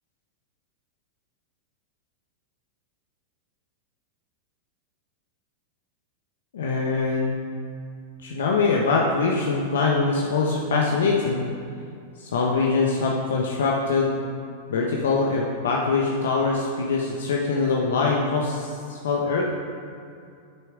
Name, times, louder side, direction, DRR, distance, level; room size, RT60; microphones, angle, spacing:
voice 1, 6.5-7.4 8.2-11.4 12.2-14.1 14.7-19.4, left 4 dB, 70° left, -1 dB, 0.9 m, -23 dB
8.9 x 6.3 x 4.8 m, 2.4 s
hypercardioid pair, 100°, 0 cm